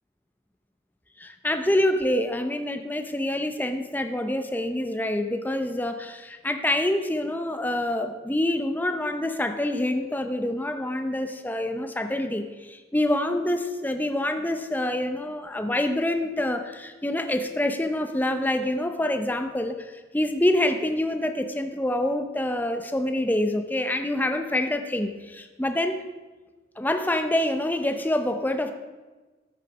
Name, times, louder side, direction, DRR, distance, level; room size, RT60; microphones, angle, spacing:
voice 1, 1.2-26.0 26.8-28.7, left 1 dB, 10° left, 7 dB, 0.6 m, -26 dB
13.5 x 6.4 x 6.0 m, 1.2 s
head